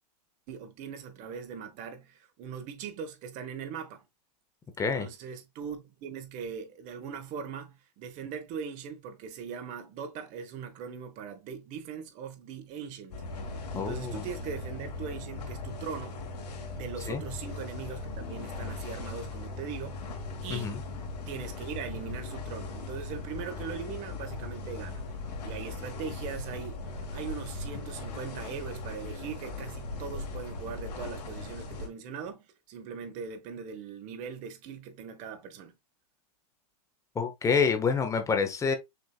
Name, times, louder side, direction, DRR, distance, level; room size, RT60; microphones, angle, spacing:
voice 1, 0.5-4.0 4.8-16.2 16.7-20.1 20.4-20.8 21.3-25.0 25.4-35.7, right 6 dB, 40° right, 1.1 m, -40 dB
voice 2, 4.8-5.1 13.7-14.2 17.1-17.2 20.5-20.8 37.1-38.8, left 5 dB, 15° left, 0.8 m, -27 dB
sound 1, 13.1-31.9, left 3 dB, 75° left, 1.7 m, -39 dB
6.4 x 2.9 x 2.3 m
hypercardioid pair, 130°, 21 cm